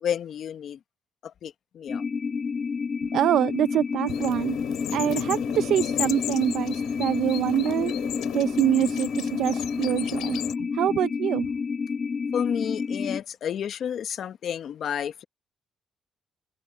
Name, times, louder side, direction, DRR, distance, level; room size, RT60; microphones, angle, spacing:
voice 1, 0.0-0.8 1.2-2.0 12.3-15.2, left 9 dB, 65° left, 1.0 m, -31 dB
sound 1, 1.9-13.2, left 5 dB, 35° left, 0.3 m, -29 dB
voice 2, 3.1-4.6 4.9-7.9 8.3-11.5, right 12 dB, 75° right, 0.5 m, -25 dB
sound 2, 4.1-10.5, left 13 dB, 90° left, 2.7 m, -35 dB
cardioid pair, 90°, 0 cm